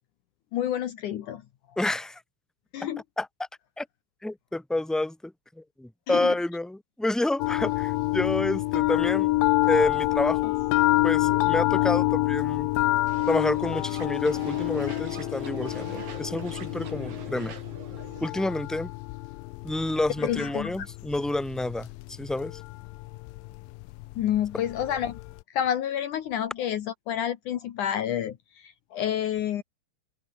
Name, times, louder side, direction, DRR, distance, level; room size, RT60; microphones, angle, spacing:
voice 1, 0.5-1.4 2.7-3.0 6.1-6.3 20.2-20.9 24.2-25.2 25.5-29.6, left 10 dB, 65° left, 2.6 m, -29 dB
voice 2, 1.8-2.2 2.8-2.9 3.2-3.3 3.8-3.9 4.2-9.3 9.7-10.5 11.0-12.7 13.3-17.5 18.2-18.9 19.6-22.6, left 2 dB, ahead, 3.6 m, -29 dB
sound 1, 7.4-25.4, left 21 dB, 85° left, 2.3 m, -27 dB
sound 2, 13.1-18.3, right 6 dB, 70° right, 5.4 m, -43 dB
omnidirectional pair, 4.1 m